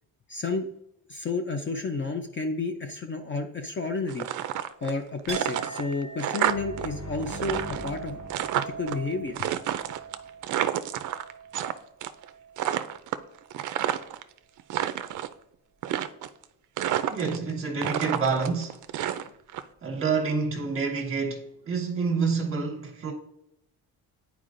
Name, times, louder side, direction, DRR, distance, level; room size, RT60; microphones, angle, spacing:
voice 1, 0.3-0.7 1.1-4.3 4.8-8.2 8.8-9.5, left 3 dB, 30° left, 0.5 m, -31 dB
sound 1, 4.1-5.0 5.3-6.9 7.1-9.0 9.4-11.7 12.0-12.3 12.6-14.2 14.6-15.3 15.8-16.4 16.8-17.5 17.8-19.6, right 11 dB, 55° right, 0.4 m, -29 dB
Chink clink, 5.3-13.0 13.3-14.0, right 6 dB, 15° right, 1.2 m, -42 dB
sound 2, 6.4-10.2, left 1 dB, 50° left, 1.7 m, -42 dB
voice 2, 17.1-18.8 19.8-23.1, right 4 dB, 35° right, 1.4 m, -28 dB
9.6 x 4.6 x 2.5 m
cardioid pair, 135°, 38 cm